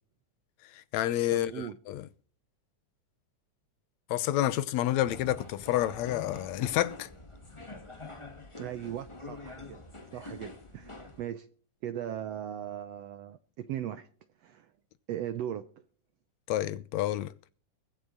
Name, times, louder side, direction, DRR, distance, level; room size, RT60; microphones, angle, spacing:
voice 1, 0.7-2.0 4.1-7.1 16.5-17.3, left 13 dB, 70° left, 2.0 m, -29 dB
voice 2, 1.3-1.8 8.6-9.8 10.1-11.5 11.8-14.1 14.4-14.7 15.1-15.8, right 10 dB, 75° right, 1.5 m, -38 dB
sound 1, 5.0-11.2, left 3 dB, 15° left, 1.1 m, -46 dB
22.5 x 7.9 x 4.0 m
omnidirectional pair, 3.6 m